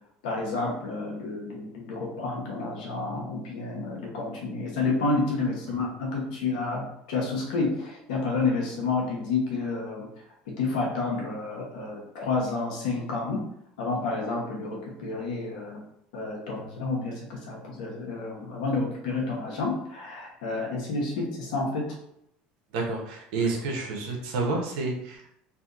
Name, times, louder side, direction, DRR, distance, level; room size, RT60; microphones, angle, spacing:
voice 1, 0.2-10.1 10.5-13.4 13.8-15.8 16.1-21.9, left 3 dB, 85° left, -2 dB, 1.0 m, -30 dB
voice 2, 22.7-25.3, right 3 dB, 80° right, 0 dB, 0.8 m, -29 dB
2.7 x 2.6 x 2.5 m, 0.74 s
supercardioid pair, 85°, 4 cm